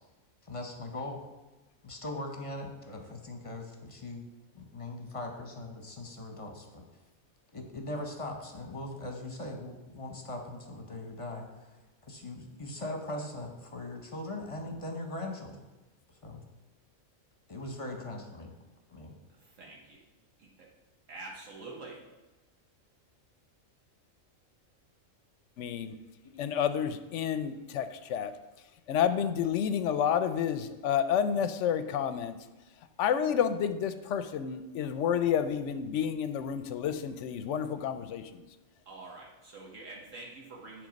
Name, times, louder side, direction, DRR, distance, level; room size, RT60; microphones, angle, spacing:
voice 1, 0.4-1.2 1.8-4.3 4.5-6.8 7.5-11.8 12.1-15.6 16.2-16.4 17.5-18.5 18.9-19.1 26.3-26.5, left 2 dB, 30° left, 3 dB, 0.8 m, -40 dB
voice 2, 19.4-20.0 20.4-20.7 21.1-22.0 38.9-40.9, right 2 dB, 70° right, -2 dB, 1.4 m, -46 dB
voice 3, 25.6-25.9 26.4-28.3 28.9-32.4 33.0-38.4, left 8 dB, 70° left, 11 dB, 0.8 m, -30 dB
10.0 x 3.4 x 5.1 m, 1.1 s
omnidirectional pair, 1.4 m